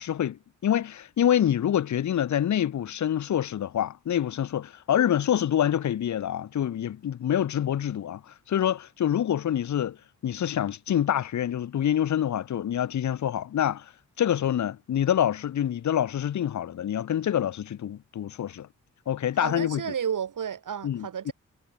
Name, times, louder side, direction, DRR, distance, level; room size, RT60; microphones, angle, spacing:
voice 1, 0.0-10.0 10.2-13.9 14.2-18.7 19.1-19.8 20.8-21.3, left 10 dB, 65° left, 0.7 m, -26 dB
voice 2, 19.4-21.3, right 8 dB, 85° right, 2.4 m, -32 dB
wide cardioid pair, 110°, 31 cm